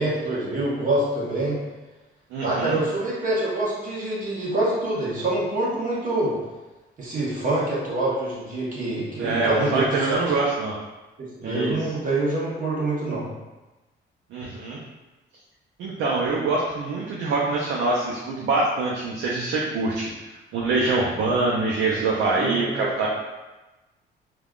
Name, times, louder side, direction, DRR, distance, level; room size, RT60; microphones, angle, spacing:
voice 1, 0.0-1.6 2.4-6.3 7.0-10.2 11.2-13.2 22.3-22.9, right 2 dB, 40° right, -6 dB, 1.1 m, -26 dB
voice 2, 2.3-2.8 9.2-10.7 11.4-11.8 14.3-14.8 15.8-20.1 20.5-23.1, right 3 dB, 75° right, -4 dB, 0.5 m, -24 dB
3.3 x 2.2 x 2.4 m, 1.1 s
cardioid pair, 90°, 20 cm